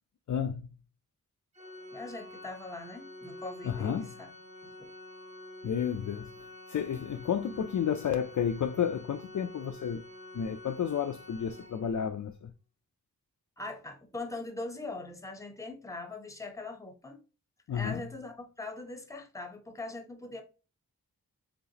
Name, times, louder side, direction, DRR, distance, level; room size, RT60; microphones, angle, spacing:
voice 1, 0.3-0.7 3.6-4.1 5.6-6.3 6.7-10.0 10.3-12.5 17.7-18.0, left 8 dB, 55° left, 0.4 m, -31 dB
Organ, 1.5-12.3, left 2 dB, 20° right, 0.8 m, -48 dB
voice 2, 1.9-4.3 4.8-4.9 13.6-17.2 17.7-20.4, left 2 dB, 10° left, 0.8 m, -41 dB
4.0 x 3.5 x 2.8 m
wide cardioid pair, 110°, 35 cm